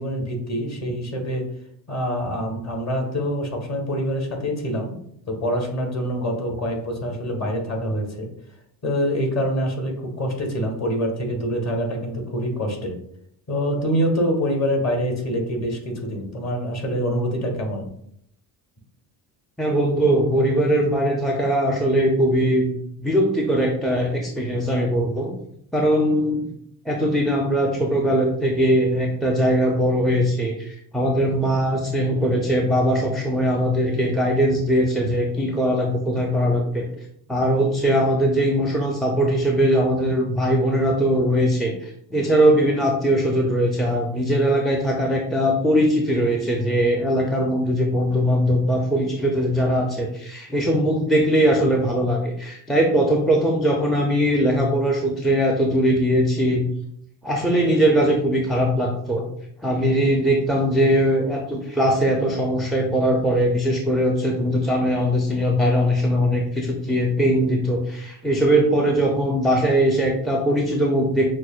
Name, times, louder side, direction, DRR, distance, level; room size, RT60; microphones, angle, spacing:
voice 1, 0.0-1.4 1.9-4.9 5.3-8.3 8.8-13.0 13.5-17.9, equal, 35° left, 1 dB, 1.5 m, -25 dB
voice 2, 19.6-22.7 23.0-25.4 25.7-26.4 26.9-36.9 37.3-56.7 57.2-59.2 59.6-71.4, equal, ahead, 0 dB, 0.4 m, -20 dB
6.0 x 2.1 x 2.4 m, 0.70 s
supercardioid pair, 85°, 46 cm